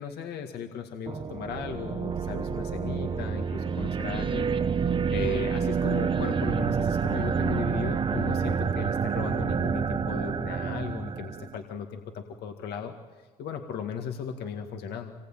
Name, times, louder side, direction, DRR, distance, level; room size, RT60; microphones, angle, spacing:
voice 1, 0.0-4.5 5.1-12.9 13.4-15.1, left 7 dB, 75° left, 4 dB, 2.0 m, -36 dB
sound 1, 1.1-11.6, right 6 dB, 30° right, 0.8 m, -28 dB
26.0 x 20.5 x 9.1 m, 1.4 s
cardioid pair, 110°, 17 cm